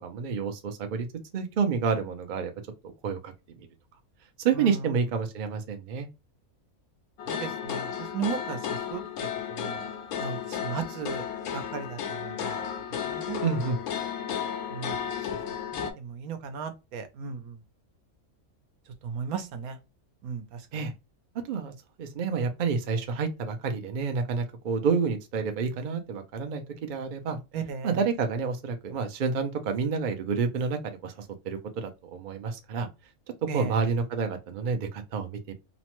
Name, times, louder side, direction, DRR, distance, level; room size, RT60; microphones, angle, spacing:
voice 1, 0.0-1.1 1.3-2.5 3.0-3.3 3.6-3.7 4.4-6.1 13.4-13.8 20.7-20.9 21.4-21.7 22.0-27.4 27.8-32.9 33.5-35.5, right 5 dB, 65° right, 0.5 m, -29 dB
sound 1, 7.2-15.9, left 8 dB, 85° left, 1.1 m, -33 dB
voice 2, 7.3-9.8 10.2-11.2 11.5-12.6 13.0-13.4 14.7-15.0 15.7-17.6 19.0-19.8 20.2-20.6 27.5-28.0 33.5-33.7, right 6 dB, 80° right, 1.1 m, -36 dB
3.0 x 2.1 x 2.9 m
omnidirectional pair, 1.5 m